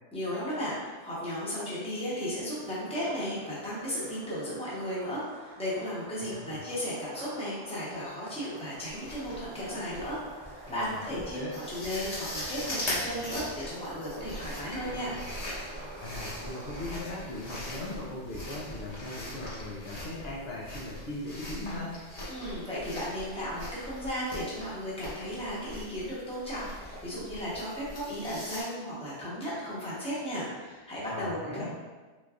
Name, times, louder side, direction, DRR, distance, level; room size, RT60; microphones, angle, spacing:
voice 1, 0.1-10.2 10.5-15.1 22.3-31.8, equal, 5° left, -8 dB, 0.9 m, -35 dB
sound 1, 0.9-17.0, right 2 dB, 55° right, 0.5 m, -49 dB
sound 2, 2.6-4.3 4.7-5.2 7.1-16.6, right 2 dB, 85° right, 0.9 m, -51 dB
voice 2, 6.2-6.6 10.7-11.5 16.0-22.0 31.1-31.7, left 2 dB, 65° left, -4 dB, 0.8 m, -39 dB
sound 3, 8.9-28.6, left 1 dB, 35° left, 0.9 m, -41 dB
3.8 x 3.2 x 2.4 m, 1.3 s
omnidirectional pair, 1.2 m